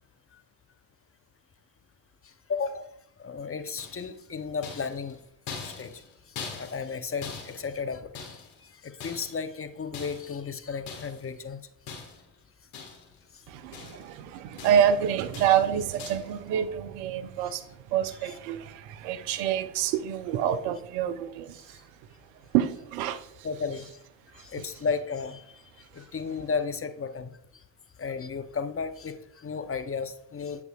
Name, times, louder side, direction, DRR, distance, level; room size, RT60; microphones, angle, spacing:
voice 1, 2.2-2.9 3.2-5.2 5.6-6.0 6.3-11.7 13.3-13.4 17.4-17.5 18.2-18.3 23.4-23.9 24.4-27.6 28.0-30.6, left 5 dB, 25° left, 0.7 m, -34 dB
sound 1, 3.8-4.2 4.6-7.0 7.2-8.6 9.0-9.5 9.9-10.4 10.9-11.3 11.9-12.3 12.7-13.2 13.5-14.2 14.6-15.0 15.3-15.7 16.0-16.3, left 5 dB, 80° left, 1.7 m, -42 dB
voice 2, 13.5-21.8 22.5-23.3 24.3-24.4, right 9 dB, 75° right, 0.7 m, -27 dB
8.2 x 6.9 x 2.3 m
hypercardioid pair, 50°, 49 cm